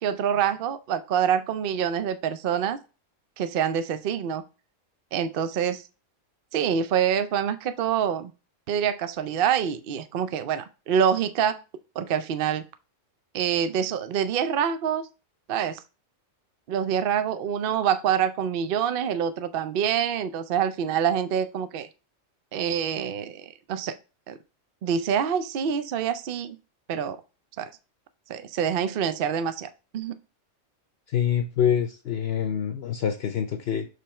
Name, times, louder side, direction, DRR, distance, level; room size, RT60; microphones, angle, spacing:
voice 1, 0.0-2.8 3.4-4.4 5.1-5.8 6.5-8.3 8.7-11.6 12.0-12.7 13.3-15.1 15.5-15.8 16.7-21.9 22.5-23.9 24.3-24.4 24.8-26.6 26.9-27.2 27.6-27.7 28.3-30.2, right 8 dB, 60° right, 11 dB, 0.7 m, -26 dB
voice 2, 31.1-33.9, left 8 dB, 60° left, 7 dB, 0.8 m, -26 dB
6.8 x 3.3 x 4.3 m, 0.32 s
omnidirectional pair, 1.3 m